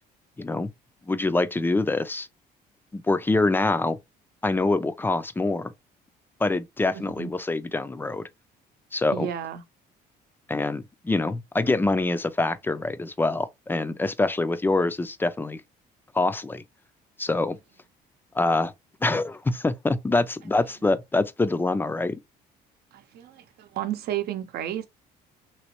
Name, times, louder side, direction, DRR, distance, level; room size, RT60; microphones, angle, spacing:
voice 1, 0.4-0.7 1.1-2.3 2.9-4.0 4.4-5.7 6.4-8.3 8.9-9.3 10.5-15.6 16.1-16.6 17.2-17.6 18.3-18.7 19.0-22.2, left 2 dB, 10° left, 0.4 m, -25 dB
voice 2, 6.9-7.3 9.1-9.6 22.9-24.9, right 11 dB, 70° right, 0.7 m, -32 dB
3.1 x 2.9 x 2.9 m
cardioid pair, 110°, 17 cm